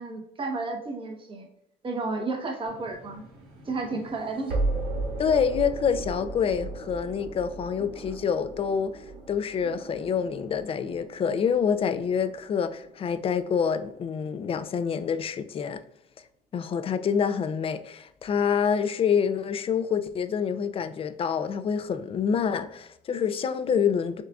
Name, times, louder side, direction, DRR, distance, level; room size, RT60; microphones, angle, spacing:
voice 1, 0.0-1.5 1.8-3.2 3.6-4.6, right 3 dB, 30° right, 1.0 m, -32 dB
sound 1, 2.7-13.7, right 2 dB, 80° right, 1.4 m, -36 dB
voice 2, 5.2-9.0 9.3-15.8 16.5-24.2, left 7 dB, 35° left, 0.4 m, -27 dB
6.4 x 2.4 x 2.3 m
cardioid pair, 110°, 17 cm